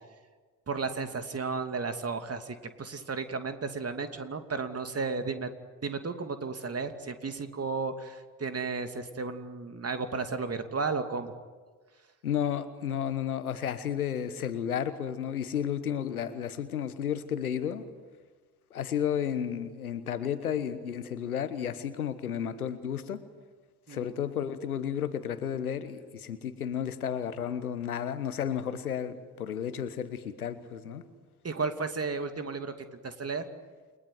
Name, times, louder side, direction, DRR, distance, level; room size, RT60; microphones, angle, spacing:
voice 1, 0.7-5.5 5.8-11.3 23.9-24.1 31.4-32.7 33.0-33.4, right 4 dB, 35° right, 7 dB, 2.7 m, -33 dB
voice 2, 12.2-17.8 18.7-23.2 23.9-31.0, left 9 dB, 85° left, 13 dB, 1.2 m, -32 dB
29.5 x 20.5 x 9.5 m, 1.4 s
figure-of-eight pair, 45°, 43 cm